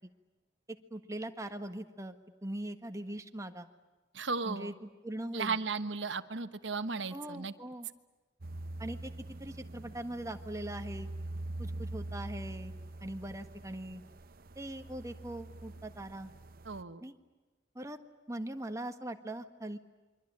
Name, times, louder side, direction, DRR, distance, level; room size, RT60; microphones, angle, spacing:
voice 1, 0.7-2.1 2.4-3.7 4.4-5.6 7.1-7.9 8.8-9.1 9.4-11.1 11.6-12.7 13.0-14.0 14.5-16.3 17.0-17.1 17.7-18.0 18.3-19.8, right 1 dB, 15° right, 7 dB, 1.6 m, -41 dB
voice 2, 4.1-4.7 5.3-7.5 16.6-17.0, right 4 dB, 70° right, 10 dB, 1.2 m, -35 dB
sound 1, 8.4-16.8, right 2 dB, 55° right, 0.9 m, -44 dB
28.5 x 23.5 x 8.8 m, 1.2 s
head